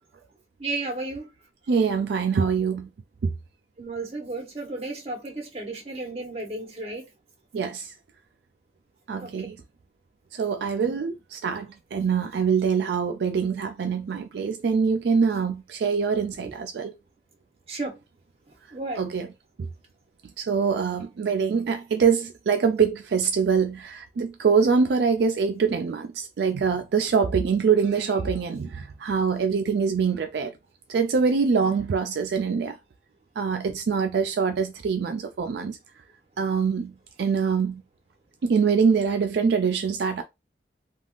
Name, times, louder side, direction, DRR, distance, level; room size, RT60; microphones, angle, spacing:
voice 1, 0.6-1.3 3.8-7.0 9.2-9.5 16.4-16.5 17.7-18.0 18.7-19.1, right 2 dB, 35° right, 1.0 m, -33 dB
voice 2, 1.7-2.9 3.2-3.3 7.5-7.9 9.1-9.6 10.4-16.9 19.0-19.3 19.6-19.7 20.4-30.5 30.9-32.8 33.4-35.8 36.4-36.9 37.2-37.8 38.4-40.2, right 5 dB, 75° right, 0.4 m, -24 dB
3.5 x 2.3 x 2.4 m
head